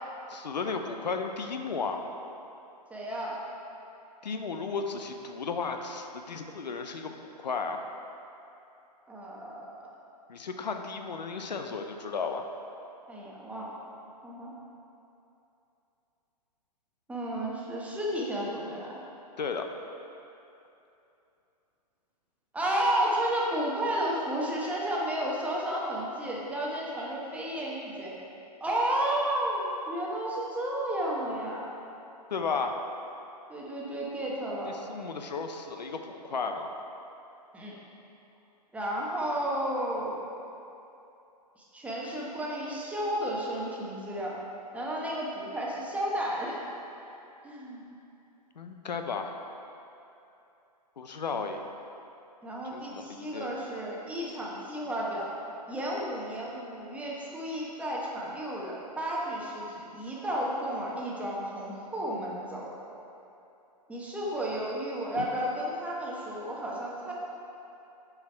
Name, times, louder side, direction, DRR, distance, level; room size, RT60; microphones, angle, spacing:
voice 1, 0.3-2.0 4.2-7.8 10.3-12.4 19.4-19.7 32.3-32.8 34.7-36.7 48.6-49.4 51.0-51.7 52.7-53.5 65.2-65.3, left 5 dB, 90° left, 5 dB, 0.6 m, -34 dB
voice 2, 2.9-3.4 9.1-9.7 13.1-13.7 14.2-14.5 17.1-18.9 22.5-28.1 28.6-31.7 33.5-34.7 37.5-37.8 38.7-40.3 41.6-44.4 44.7-46.6 47.1-47.8 52.4-55.3 55.7-62.7 63.9-67.1, right 1 dB, 5° right, -4 dB, 0.9 m, -32 dB
6.9 x 4.7 x 4.5 m, 2.8 s
hypercardioid pair, 130°, 21 cm